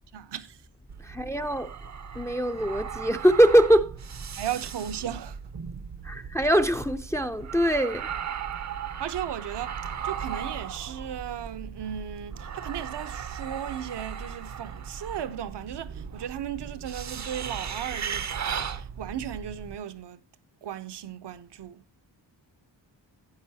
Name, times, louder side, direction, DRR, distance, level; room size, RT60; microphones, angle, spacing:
voice 1, 0.1-0.6 4.3-5.4 9.0-18.3 18.7-20.2 20.6-21.8, right 10 dB, 70° right, 0.9 m, -36 dB
sound 1, 0.9-19.7, right 7 dB, 40° right, 0.7 m, -37 dB
voice 2, 1.0-1.8 2.1-4.0 6.0-8.1, equal, 5° left, 0.5 m, -22 dB
12.5 x 9.6 x 2.8 m
wide cardioid pair, 130°, 43 cm